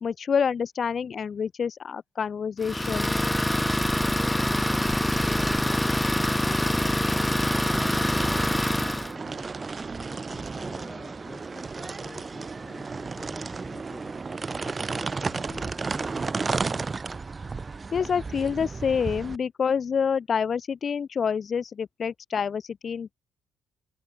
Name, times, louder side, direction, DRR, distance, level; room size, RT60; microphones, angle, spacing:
voice 1, 0.0-3.1 17.9-23.1, left 6 dB, 45° left, 0.3 m, -27 dB
Idling, 2.6-9.1, left 1 dB, 5° left, 0.7 m, -25 dB
sound 1, 3.6-19.4, right 4 dB, 30° right, 1.1 m, -34 dB
voice 2, 5.6-16.9, left 3 dB, 25° left, 6.8 m, -48 dB
cardioid pair, 90°, 0 cm